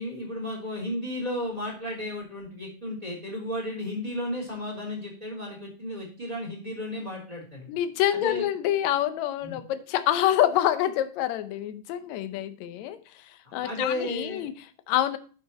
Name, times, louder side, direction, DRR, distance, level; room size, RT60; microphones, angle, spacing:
voice 1, 0.0-7.7 8.1-8.5 9.4-9.6 13.4-14.4, left 1 dB, 10° right, -1 dB, 3.2 m, -34 dB
voice 2, 7.7-15.2, left 12 dB, 70° left, 10 dB, 1.9 m, -27 dB
11.0 x 6.8 x 2.9 m, 0.39 s
omnidirectional pair, 3.7 m